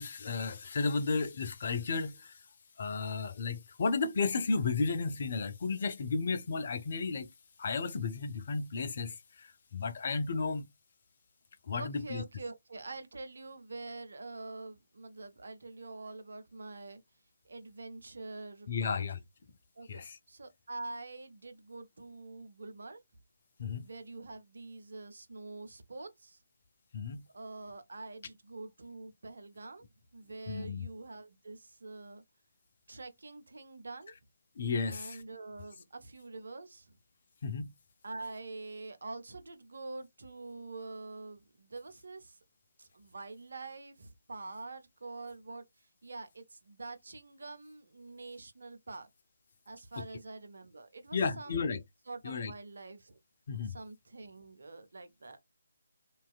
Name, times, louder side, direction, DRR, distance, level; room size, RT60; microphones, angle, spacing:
voice 1, 0.0-2.4 2.8-7.3 7.6-10.7 11.6-12.2 18.7-19.2 19.9-20.2 23.6-23.9 26.9-27.3 30.5-30.9 34.6-35.2 37.4-37.7 50.0-50.1 51.1-51.8 52.2-52.5 53.5-53.8, left 4 dB, 40° left, 0.4 m, -33 dB
voice 2, 11.8-17.0 17.4-19.0 19.8-23.0 23.8-26.4 27.3-29.8 30.1-32.2 32.9-34.1 34.9-37.0 38.0-42.4 42.8-49.1 49.7-51.7 52.1-53.2 53.6-55.4, right 3 dB, 60° right, 0.6 m, -46 dB
2.5 x 2.3 x 2.3 m
figure-of-eight pair, 145°, 0 cm